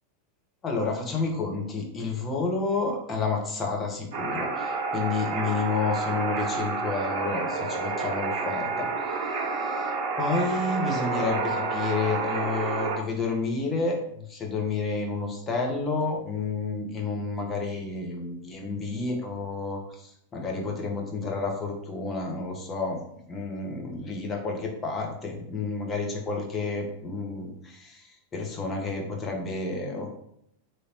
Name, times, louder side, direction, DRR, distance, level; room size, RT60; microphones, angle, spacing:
voice 1, 0.6-8.9 9.6-9.9 10.2-14.0 14.3-23.0 23.3-28.1 28.3-30.1, left 4 dB, 20° left, 0 dB, 0.9 m, -30 dB
sound 1, 4.1-13.0, right 4 dB, 40° right, 1.1 m, -29 dB
3.9 x 3.2 x 2.9 m, 0.73 s
figure-of-eight pair, 90°, 0 cm